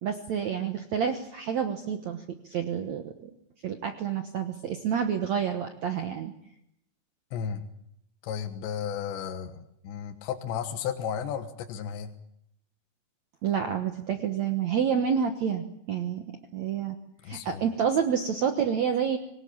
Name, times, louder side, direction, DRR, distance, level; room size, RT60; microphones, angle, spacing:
voice 1, 0.0-3.3 3.6-6.3 13.4-16.2 16.5-17.0 17.2-19.2, right 7 dB, 85° right, 6 dB, 1.5 m, -28 dB
voice 2, 7.3-7.7 8.2-12.1 17.2-17.6, left 8 dB, 80° left, 5 dB, 3.6 m, -34 dB
25.0 x 19.0 x 8.7 m, 0.78 s
omnidirectional pair, 5.2 m